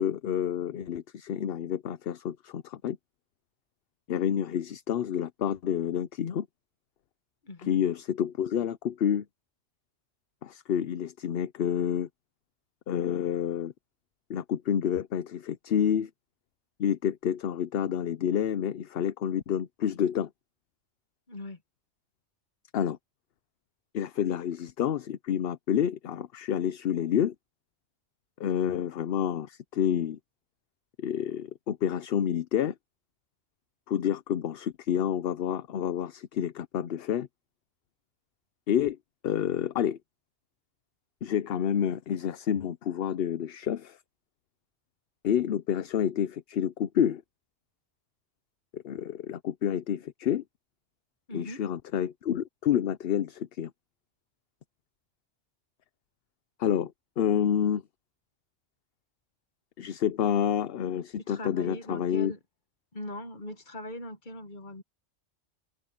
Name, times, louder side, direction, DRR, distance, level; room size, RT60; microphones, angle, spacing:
voice 1, 0.0-3.0 4.1-6.5 7.6-9.2 10.4-12.1 12.9-13.7 14.3-16.1 16.8-20.3 22.7-23.0 23.9-27.3 28.4-30.2 31.0-32.7 33.9-37.3 38.7-39.0 39.2-40.0 41.2-44.0 45.2-47.2 48.7-50.4 51.3-53.7 56.6-57.8 59.8-62.3, left 9 dB, 65° left, 0.8 m, -29 dB
voice 2, 7.4-7.8 21.3-21.6 51.3-51.6 61.2-62.4 62.9-64.8, left 1 dB, 45° left, 1.7 m, -40 dB
open air
omnidirectional pair, 1.1 m